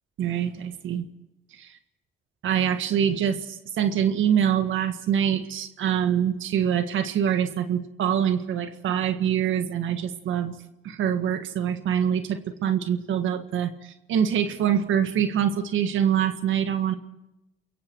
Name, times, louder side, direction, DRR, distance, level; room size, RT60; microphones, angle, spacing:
voice 1, 0.2-1.1 1.5-1.7 2.4-10.6 10.8-16.9, right 9 dB, 80° right, 8 dB, 1.7 m, -25 dB
28.0 x 22.5 x 4.7 m, 0.92 s
cardioid pair, 90°, 20 cm